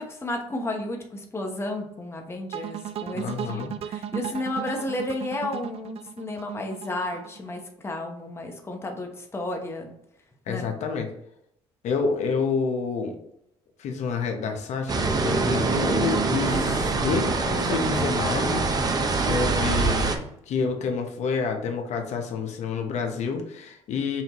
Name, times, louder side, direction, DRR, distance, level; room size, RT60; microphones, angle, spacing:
voice 1, 0.0-3.2 3.5-9.9 10.5-10.6, left 1 dB, 20° left, 2 dB, 0.9 m, -32 dB
sound 1, 2.5-7.6, right 10 dB, 55° right, 0.4 m, -35 dB
voice 2, 3.1-3.7 10.5-11.1 11.8-13.2 13.8-24.2, left 5 dB, 65° left, 4 dB, 0.9 m, -29 dB
sound 2, 14.9-20.2, right 3 dB, 30° right, 0.7 m, -24 dB
5.6 x 2.7 x 3.0 m, 0.76 s
cardioid pair, 90°, 12 cm